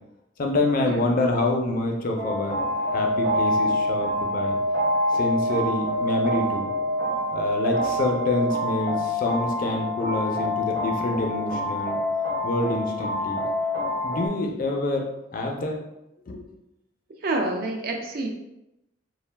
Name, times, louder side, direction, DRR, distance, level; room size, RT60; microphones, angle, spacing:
voice 1, 0.4-4.6 5.1-6.7 7.3-12.0 12.4-13.4 14.0-15.8 16.3-16.4, left 2 dB, 45° left, 1 dB, 0.4 m, -27 dB
sound 1, 2.2-14.3, left 1 dB, 75° right, 1.0 m, -26 dB
voice 2, 17.2-18.3, right 2 dB, 50° right, 3 dB, 0.4 m, -28 dB
2.3 x 2.1 x 3.2 m, 0.89 s
head